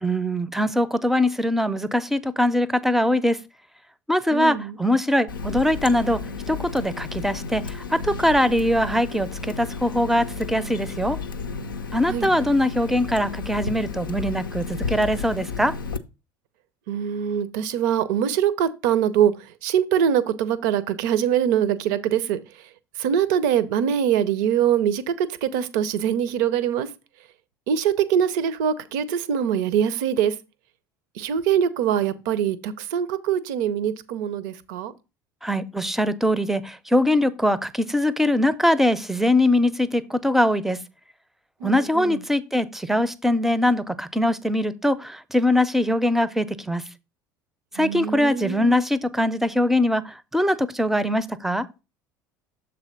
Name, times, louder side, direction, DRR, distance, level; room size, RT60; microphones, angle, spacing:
voice 1, 0.0-3.4 4.1-6.2 6.5-9.3 9.6-11.2 11.9-15.7 35.4-40.8 41.6-46.8 47.7-51.7, left 1 dB, 5° right, 0.5 m, -22 dB
voice 2, 4.3-4.8 12.1-12.3 16.9-19.3 19.6-22.4 23.0-26.9 27.7-30.3 31.2-34.9 41.6-42.2 47.8-48.8, right 9 dB, 65° right, 0.5 m, -23 dB
Water tap faucet, 5.3-16.0, left 4 dB, 85° left, 0.4 m, -32 dB
7.1 x 3.3 x 5.1 m
figure-of-eight pair, 65°, 11 cm